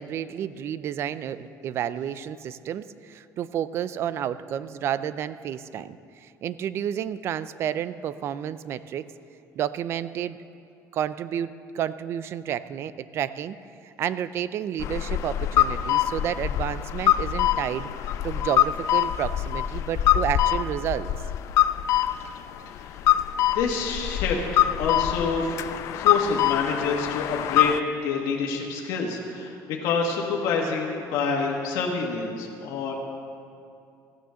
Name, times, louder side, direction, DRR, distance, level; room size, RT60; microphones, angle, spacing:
voice 1, 0.0-9.1 9.6-10.4 10.9-13.6 13.8-21.1, right 10 dB, 40° right, 15 dB, 0.4 m, -31 dB
sound 1, 14.8-27.8, left 11 dB, 50° left, 0.4 m, -24 dB
voice 2, 22.6-23.0 23.5-25.5 25.9-27.8 28.0-32.9, left 5 dB, 80° left, -1 dB, 1.6 m, -27 dB
15.0 x 9.2 x 6.9 m, 2.5 s
cardioid pair, 175°, 7 cm